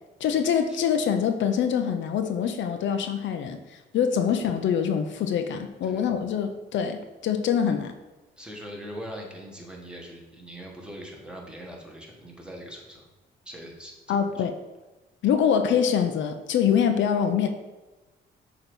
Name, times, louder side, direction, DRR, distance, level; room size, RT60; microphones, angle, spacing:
voice 1, 0.2-7.9 14.1-14.5 15.2-17.5, left 8 dB, 70° left, 7 dB, 0.6 m, -24 dB
voice 2, 5.8-6.2 8.4-13.0 13.4-14.2, equal, 5° right, -1 dB, 1.5 m, -41 dB
7.1 x 2.9 x 5.3 m, 1.2 s
cardioid pair, 90°, 20 cm